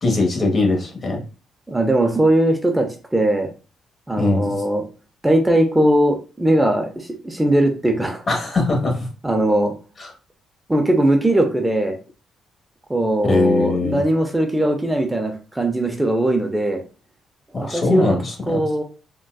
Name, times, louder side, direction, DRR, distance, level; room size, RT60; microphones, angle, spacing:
voice 1, 0.0-1.2 4.2-4.5 8.3-9.1 10.0-10.1 13.2-14.0 17.5-18.6, left 3 dB, 40° left, 2 dB, 1.1 m, -21 dB
voice 2, 1.7-3.5 4.1-4.8 5.2-8.2 9.2-9.7 10.7-12.0 12.9-16.8 17.5-18.2 18.5-18.8, right 1 dB, 10° right, 3 dB, 0.6 m, -19 dB
3.9 x 2.2 x 2.3 m, 0.34 s
cardioid pair, 90°, 0 cm